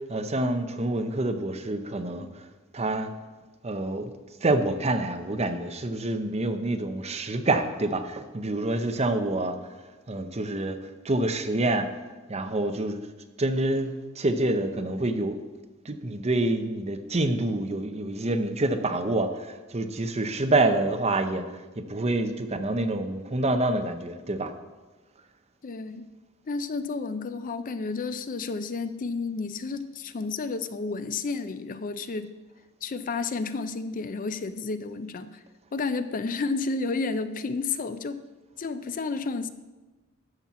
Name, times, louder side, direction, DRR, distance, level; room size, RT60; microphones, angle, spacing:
voice 1, 0.1-2.5 2.7-3.1 3.6-4.1 4.4-9.7 10.1-10.8 11.0-12.0 12.3-13.0 13.4-15.4 15.8-24.5, right 2 dB, 30° right, 7 dB, 0.8 m, -27 dB
voice 2, 25.6-26.1 26.5-32.3 32.8-35.4 35.7-38.2 38.6-39.5, left 4 dB, 40° left, 11 dB, 0.4 m, -31 dB
12.5 x 4.5 x 7.4 m, 1.2 s
head